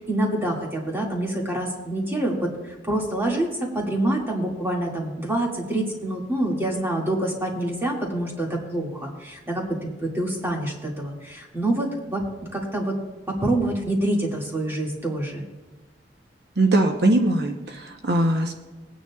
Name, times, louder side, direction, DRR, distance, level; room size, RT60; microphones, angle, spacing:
voice 1, 0.0-9.7 10.0-12.9 13.3-15.4, right 1 dB, 15° right, -2 dB, 2.1 m, -26 dB
voice 2, 16.6-18.5, right 2 dB, 65° right, 3 dB, 0.9 m, -21 dB
20.0 x 9.3 x 2.4 m, 1.2 s
head